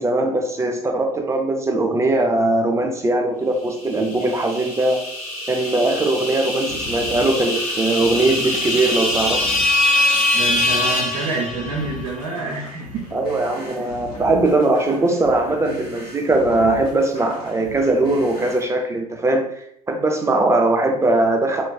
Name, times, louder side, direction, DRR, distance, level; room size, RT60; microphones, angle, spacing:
voice 1, 0.0-5.0 5.5-9.5 13.1-21.7, right 2 dB, 15° right, 4 dB, 0.4 m, -20 dB
sound 1, 3.9-12.0, left 2 dB, 40° left, 1.5 m, -23 dB
sound 2, 6.6-18.6, left 2 dB, 70° left, 1.2 m, -39 dB
voice 2, 10.3-13.1 13.8-13.9, right 3 dB, 60° right, -2 dB, 0.6 m, -27 dB
3.1 x 2.5 x 2.2 m, 0.72 s
hypercardioid pair, 70°, 20 cm